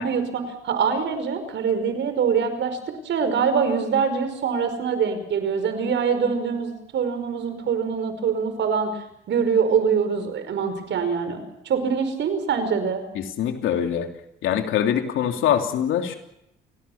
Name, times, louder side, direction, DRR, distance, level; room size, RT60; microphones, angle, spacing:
voice 1, 0.0-2.8 3.0-13.0, right 6 dB, 70° right, 9 dB, 5.1 m, -24 dB
voice 2, 13.1-14.1 14.4-16.2, left 9 dB, 80° left, 4 dB, 3.2 m, -23 dB
28.5 x 18.5 x 7.3 m, 0.79 s
cardioid pair, 90°, 20 cm